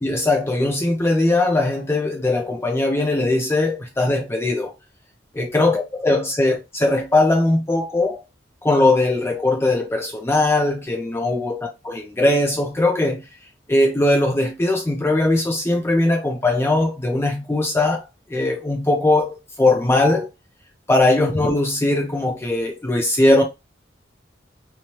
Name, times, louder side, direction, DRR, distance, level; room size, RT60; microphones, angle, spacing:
voice 1, 0.0-4.7 5.4-8.2 8.6-13.2 13.7-18.0 18.3-20.3 20.9-23.4, left 2 dB, 15° left, 0.4 m, -20 dB
3.1 x 2.0 x 2.7 m
head